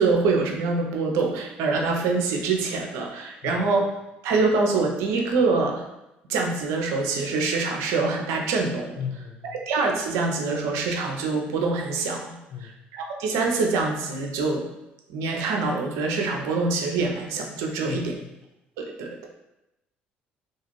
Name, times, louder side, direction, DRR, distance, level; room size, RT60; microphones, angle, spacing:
voice 1, 0.0-3.9 4.2-5.8 6.3-9.0 9.6-14.6 15.1-18.1 18.8-19.3, right 3 dB, 70° right, 1 dB, 0.5 m, -25 dB
voice 2, 9.0-9.6 12.5-12.8 17.8-18.1, left 7 dB, 55° left, 5 dB, 0.4 m, -35 dB
2.5 x 2.4 x 3.0 m, 0.90 s
hypercardioid pair, 60°, 5 cm